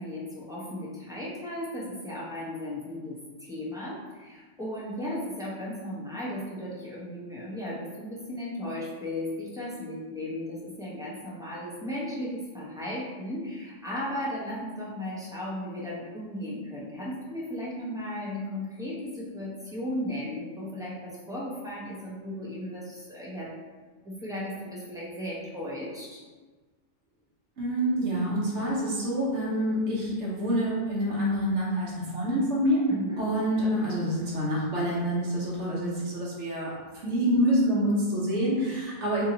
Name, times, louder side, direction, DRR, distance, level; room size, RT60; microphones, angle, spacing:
voice 1, 0.0-3.2 3.5-23.5 24.0-26.2 32.9-33.3, left 1 dB, 5° right, -7 dB, 0.6 m, -35 dB
voice 2, 27.6-32.8 33.2-36.7 37.0-39.2, equal, 70° right, -6 dB, 1.2 m, -27 dB
2.8 x 2.7 x 3.8 m, 1.4 s
omnidirectional pair, 1.2 m